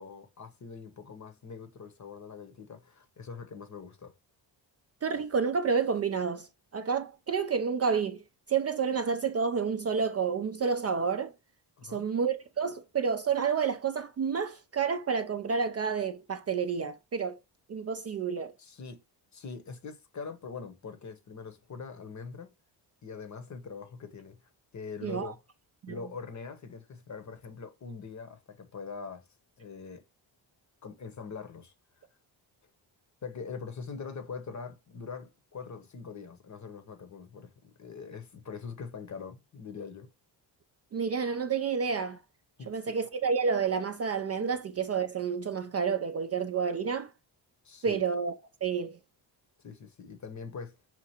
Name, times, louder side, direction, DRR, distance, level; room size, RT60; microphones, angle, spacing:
voice 1, 0.0-4.1 11.8-12.1 18.6-19.0 19.3-22.5 23.0-24.4 24.7-25.4 25.9-29.2 29.6-30.0 30.8-31.7 33.2-40.1 42.6-43.0 47.6-48.0 49.6-50.8, left 5 dB, 40° left, 0.8 m, -43 dB
voice 2, 5.0-8.2 8.5-11.3 11.8-17.4 17.7-18.5 25.0-25.3 25.8-26.0 40.9-42.2 42.7-47.1 47.8-48.3 48.6-49.0, right 6 dB, 35° right, 0.4 m, -29 dB
5.7 x 2.4 x 2.8 m
cardioid pair, 80°, 46 cm